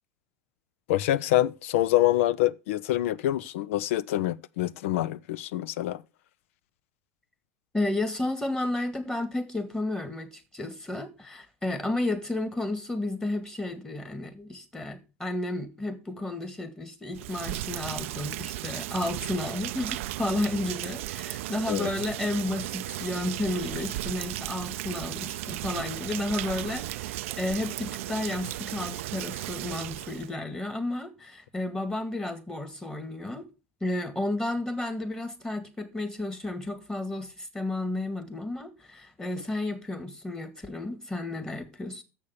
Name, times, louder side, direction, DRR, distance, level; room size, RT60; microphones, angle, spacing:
voice 1, 0.9-6.0 21.7-21.9, left 14 dB, 75° left, 0.5 m, -26 dB
voice 2, 7.7-33.5 33.8-42.0, left 2 dB, 10° left, 1.8 m, -32 dB
Rain, 17.1-30.3, right 16 dB, 75° right, 0.4 m, -35 dB
7.1 x 6.4 x 7.0 m
hypercardioid pair, 80°, 7 cm